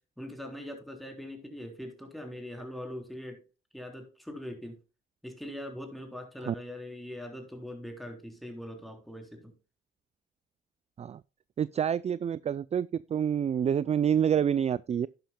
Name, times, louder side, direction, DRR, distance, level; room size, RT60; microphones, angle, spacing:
voice 1, 0.2-3.4 3.7-4.8 5.2-9.5, left 1 dB, ahead, 3.6 m, -41 dB
voice 2, 11.6-15.1, right 8 dB, 35° right, 0.4 m, -27 dB
11.5 x 10.5 x 2.2 m
cardioid pair, 90°, 20 cm